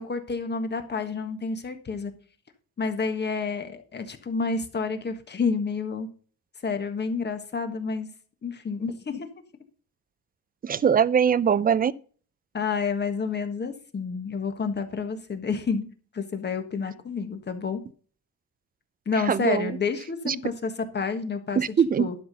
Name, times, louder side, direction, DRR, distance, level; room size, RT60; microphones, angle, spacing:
voice 1, 0.0-2.1 2.8-6.1 6.6-8.1 8.4-9.3 12.5-15.9 16.1-17.8 19.0-21.6 22.0-22.1, left 5 dB, 35° left, 1.6 m, -29 dB
voice 2, 10.6-11.9 19.3-19.7 20.3-20.4 21.6-22.1, right 7 dB, 30° right, 0.5 m, -22 dB
11.5 x 5.9 x 5.4 m
cardioid pair, 125°, 31 cm